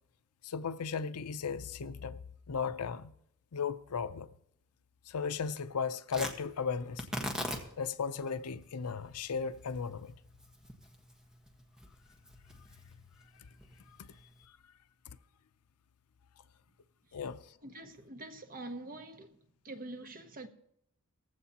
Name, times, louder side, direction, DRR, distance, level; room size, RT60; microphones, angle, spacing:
voice 1, 0.4-2.2 2.5-3.1 3.5-4.3 5.1-7.1 7.8-10.2 17.1-17.5, left 6 dB, 90° left, 0.6 m, -36 dB
Tearing, 6.1-14.4, equal, 5° right, 1.4 m, -43 dB
voice 2, 17.6-19.4 19.6-20.5, right 2 dB, 40° right, 1.1 m, -45 dB
18.5 x 15.5 x 2.9 m
head